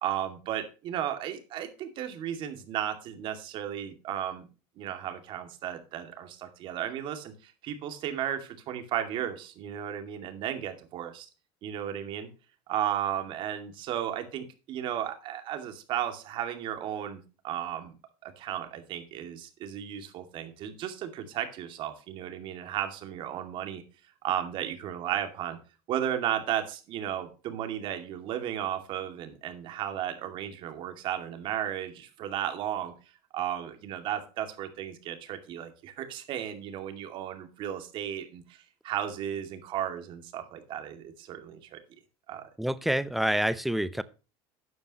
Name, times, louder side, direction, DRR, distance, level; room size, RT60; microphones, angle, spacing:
voice 1, 0.0-4.5 4.8-11.3 11.6-12.3 12.7-17.9 18.2-23.8 24.2-25.6 25.9-32.9 33.3-38.6 38.8-41.8 42.3-42.4, right 10 dB, 40° right, 7 dB, 2.4 m, -34 dB
voice 2, 42.6-44.0, right 1 dB, ahead, 15 dB, 0.6 m, -27 dB
13.0 x 9.4 x 3.0 m, 0.32 s
cardioid pair, 155°, 12 cm